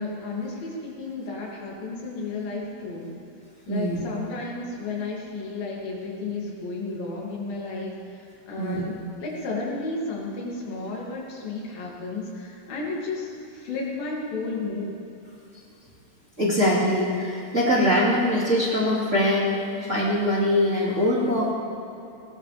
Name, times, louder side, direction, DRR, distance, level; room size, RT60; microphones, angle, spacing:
voice 1, 0.0-3.2 3.7-15.0, left 3 dB, 85° left, -3 dB, 4.4 m, -33 dB
voice 2, 3.7-4.0 8.6-8.8 16.4-21.5, left 1 dB, 25° right, -6 dB, 2.3 m, -23 dB
19.5 x 19.0 x 3.4 m, 2.9 s
omnidirectional pair, 4.0 m